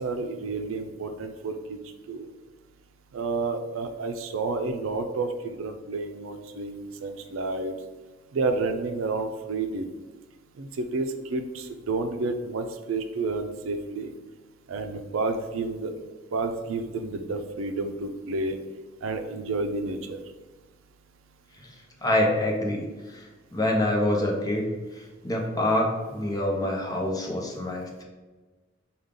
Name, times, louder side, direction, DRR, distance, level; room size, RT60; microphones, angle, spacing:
voice 1, 0.0-1.8 2.1-2.3 3.1-7.7 8.3-9.9 10.6-14.1 14.7-15.9 16.3-18.6 19.0-20.2, right 3 dB, 90° right, 7 dB, 0.4 m, -30 dB
voice 2, 22.0-22.8 23.1-23.3 23.5-24.7 25.2-28.0, left 1 dB, 20° left, -1 dB, 0.7 m, -26 dB
5.0 x 2.3 x 3.7 m, 1.3 s
head